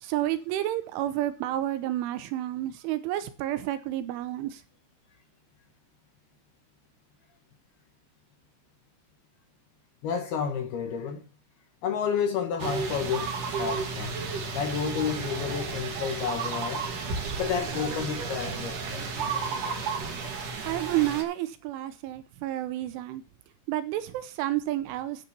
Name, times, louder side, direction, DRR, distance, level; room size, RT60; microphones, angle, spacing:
voice 1, 0.0-4.6 20.7-23.2 23.7-25.3, right 14 dB, 80° right, 3.2 m, -30 dB
voice 2, 10.0-11.2 11.8-14.1 14.5-16.9 17.4-19.1, left 7 dB, 70° left, 2.7 m, -30 dB
sound 1, 12.6-21.2, right 4 dB, 50° right, 3.0 m, -33 dB
10.0 x 6.9 x 6.8 m
omnidirectional pair, 5.7 m